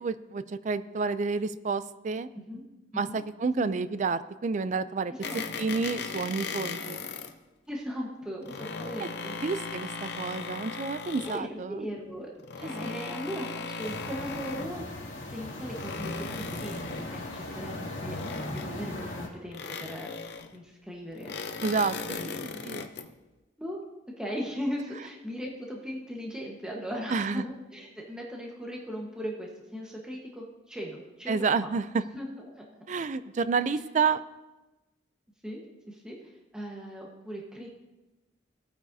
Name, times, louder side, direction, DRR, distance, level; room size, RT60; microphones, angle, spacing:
voice 1, 0.0-2.3 3.0-5.1 5.6-7.0 9.0-9.1 9.4-11.7 12.8-13.0 21.6-21.9 22.6-22.9 27.1-27.4 31.3-32.0 32.9-34.2, right 4 dB, 40° right, 14 dB, 0.4 m, -29 dB
voice 2, 2.9-3.2 3.6-3.7 5.1-5.4 7.7-9.4 11.2-14.8 15.3-18.2 18.5-20.1 20.5-21.3 22.1-22.7 23.6-23.8 24.2-31.7 32.1-32.6 33.7-33.8 35.4-37.7, equal, 5° right, -2 dB, 1.2 m, -38 dB
sound 1, 5.2-7.3 8.2-11.5 12.4-14.8 15.4-17.2 18.1-18.9 19.5-20.6 21.1-23.1, left 4 dB, 60° left, 0.7 m, -38 dB
sound 2, 13.8-19.3, left 1 dB, 75° left, 2.5 m, -38 dB
17.0 x 8.9 x 2.7 m, 1.1 s
head